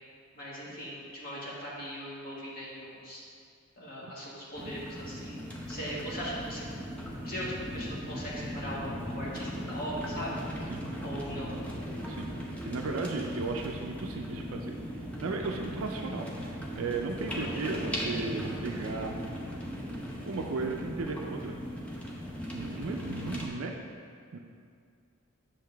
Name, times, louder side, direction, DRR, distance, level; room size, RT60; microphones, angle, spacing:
voice 1, 0.3-3.2 3.8-5.4 5.7-6.6 7.2-10.4 11.0-11.5, equal, 40° left, -7 dB, 1.7 m, -39 dB
sound 1, 4.5-23.5, equal, 5° left, 0.7 m, -38 dB
voice 2, 12.1-12.4 12.7-14.8 15.2-16.5 16.8-19.2 20.3-21.6 22.5-23.8 24.3-24.4, right 3 dB, 70° right, 2 dB, 0.5 m, -35 dB
7.7 x 6.4 x 3.4 m, 2.3 s
head